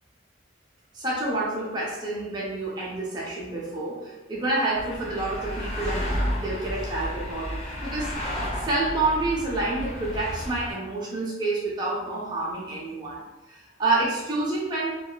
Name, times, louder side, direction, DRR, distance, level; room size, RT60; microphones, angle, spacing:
voice 1, 0.9-13.2 13.5-15.0, right 2 dB, 25° right, -5 dB, 0.5 m, -28 dB
sound 1, 4.7-10.7, equal, 35° left, 0.5 m, -32 dB
2.7 x 2.2 x 2.2 m, 1.1 s
head